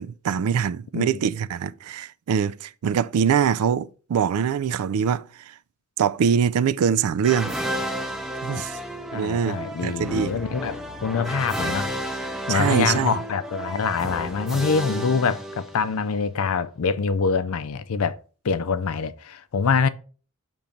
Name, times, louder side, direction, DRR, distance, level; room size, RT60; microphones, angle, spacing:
voice 1, 0.0-5.2 6.0-7.5 8.4-8.8 9.1-10.4 12.5-13.2, right 7 dB, 85° right, 0.3 m, -23 dB
sound 1, 7.2-16.1, right 1 dB, ahead, 0.6 m, -32 dB
voice 2, 9.1-11.9 12.5-18.2 18.4-19.9, left 5 dB, 75° left, 0.5 m, -25 dB
7.0 x 3.1 x 5.1 m
head